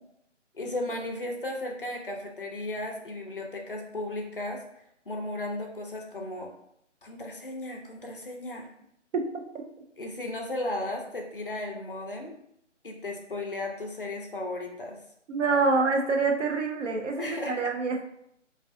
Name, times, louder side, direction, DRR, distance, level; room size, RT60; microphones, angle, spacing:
voice 1, 0.5-6.5 7.0-8.7 10.0-12.3 12.8-15.0 17.2-17.7, left 1 dB, 50° left, 2 dB, 0.4 m, -35 dB
voice 2, 15.3-18.1, right 4 dB, 75° right, 3 dB, 0.6 m, -26 dB
2.3 x 2.3 x 2.4 m, 0.73 s
hypercardioid pair, 170°, 37 cm